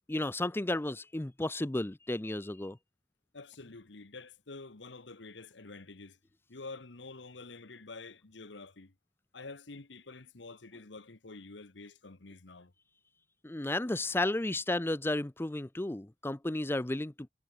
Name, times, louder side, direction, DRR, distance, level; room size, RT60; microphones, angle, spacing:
voice 1, 0.1-2.8 13.4-17.3, left 1 dB, 10° left, 0.5 m, -33 dB
voice 2, 3.3-6.2 6.5-8.9 9.3-12.7, left 3 dB, 75° left, 1.3 m, -48 dB
head